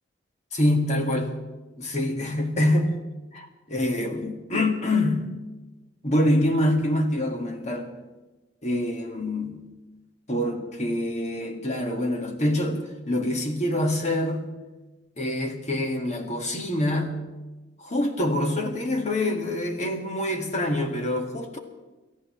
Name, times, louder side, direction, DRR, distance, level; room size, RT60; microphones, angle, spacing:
voice 1, 0.5-1.3 1.8-3.0 3.3-5.3 6.0-7.9 8.6-9.6 10.3-14.5 15.2-17.1 17.8-21.6, left 1 dB, 40° left, 3 dB, 2.0 m, -25 dB
29.5 x 14.0 x 3.3 m, 1.2 s
head